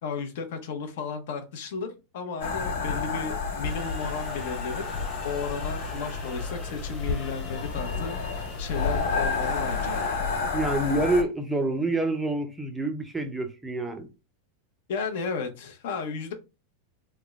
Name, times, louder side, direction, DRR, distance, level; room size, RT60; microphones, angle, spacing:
voice 1, 0.0-4.8 5.2-10.1 14.9-16.3, left 5 dB, 65° left, 0.8 m, -34 dB
sound 1, 2.4-11.2, left 4 dB, 80° left, 1.5 m, -30 dB
sound 2, 3.6-10.2, left 3 dB, 20° left, 0.9 m, -43 dB
voice 2, 10.5-14.1, right 2 dB, 5° right, 0.4 m, -27 dB
3.4 x 2.1 x 3.4 m
supercardioid pair, 165°, 0 cm